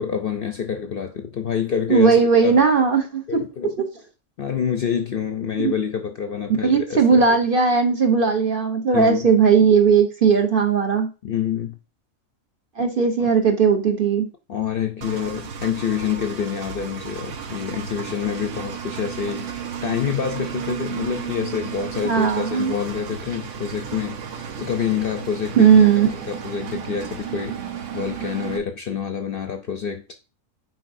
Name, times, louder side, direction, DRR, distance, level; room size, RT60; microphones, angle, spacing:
voice 1, 0.0-2.6 3.3-3.7 4.4-7.4 8.9-9.3 11.2-11.8 14.5-30.1, left 7 dB, 55° left, 0.7 m, -27 dB
voice 2, 1.9-3.5 3.8-3.9 5.6-5.7 6.6-11.1 12.8-14.3 22.0-22.7 25.6-26.1, right 6 dB, 45° right, 1.0 m, -17 dB
Engine, 15.0-28.6, right 8 dB, 65° right, 1.2 m, -33 dB
9.5 x 3.9 x 2.6 m
omnidirectional pair, 1.4 m